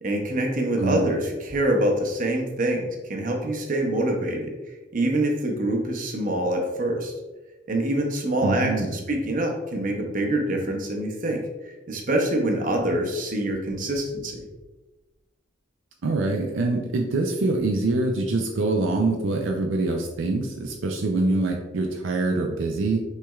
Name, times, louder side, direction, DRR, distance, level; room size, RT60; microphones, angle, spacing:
voice 1, 0.0-4.6 4.9-7.1 7.7-11.4 11.9-14.3, right 1 dB, 45° right, 2 dB, 0.7 m, -25 dB
voice 2, 8.4-9.0 16.0-23.0, right 2 dB, 70° right, 1 dB, 0.5 m, -24 dB
6.0 x 3.3 x 2.3 m, 1.1 s
head